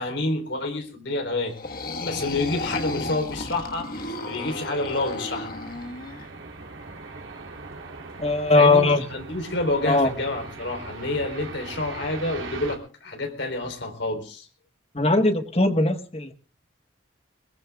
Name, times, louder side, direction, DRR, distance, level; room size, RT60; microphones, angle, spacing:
voice 1, 0.0-1.6 2.1-5.6 7.9-8.0 8.5-14.5, left 2 dB, 65° left, 4.0 m, -28 dB
sound 1, 1.5-6.3, left 2 dB, 50° left, 1.4 m, -33 dB
sound 2, 3.9-12.8, right 3 dB, 85° right, 3.5 m, -40 dB
voice 2, 8.2-9.1 9.8-10.1 14.9-16.3, left 2 dB, 30° left, 1.3 m, -19 dB
21.5 x 21.0 x 2.3 m
head